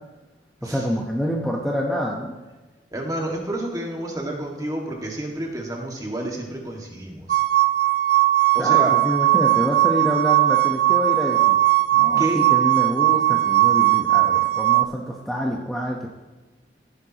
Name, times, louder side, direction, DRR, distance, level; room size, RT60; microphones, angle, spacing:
voice 1, 0.6-2.3 8.6-11.6 11.9-16.1, equal, ahead, -2 dB, 1.0 m, -27 dB
voice 2, 2.9-7.4 8.5-8.9 12.2-12.4, right 1 dB, 20° right, 0 dB, 1.9 m, -29 dB
sound 1, 7.3-14.8, right 15 dB, 50° right, 0.5 m, -18 dB
15.5 x 10.5 x 3.0 m, 1.2 s
head